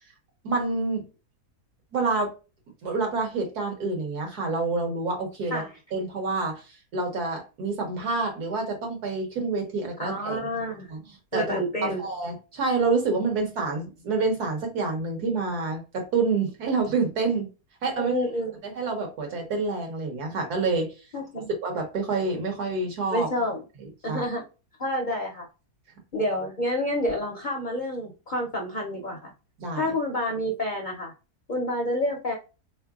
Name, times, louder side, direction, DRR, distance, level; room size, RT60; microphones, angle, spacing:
voice 1, 0.4-1.1 1.9-2.3 2.8-5.6 5.9-6.6 6.9-10.4 10.9-11.0 11.3-17.5 17.8-18.1 18.6-20.9 21.6-23.3 24.1-24.2 29.6-29.9, right 3 dB, 75° right, 1.6 m, -27 dB
voice 2, 10.0-10.9 11.3-12.0 18.0-18.5 21.1-21.5 23.1-23.6 24.0-24.4 24.8-25.5 26.1-29.3 29.7-31.1 31.5-32.4, left 1 dB, 55° left, 0.5 m, -28 dB
3.8 x 3.3 x 2.3 m
omnidirectional pair, 1.7 m